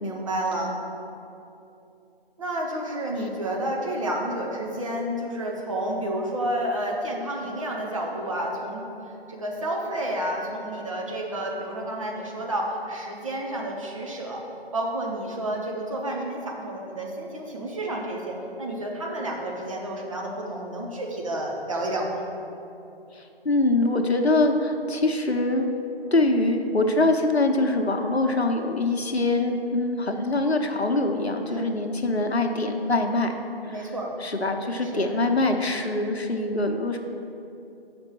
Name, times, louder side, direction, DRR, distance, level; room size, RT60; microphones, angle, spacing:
voice 1, 0.0-0.7 2.4-14.4 14.7-22.2 31.5-31.7 33.7-34.2 34.8-35.1, right 1 dB, 30° right, -2 dB, 1.0 m, -30 dB
voice 2, 23.1-25.7 26.1-33.9 34.2-37.0, left 2 dB, 85° left, 4 dB, 0.9 m, -24 dB
6.1 x 5.1 x 6.1 m, 2.8 s
figure-of-eight pair, 155°, 31 cm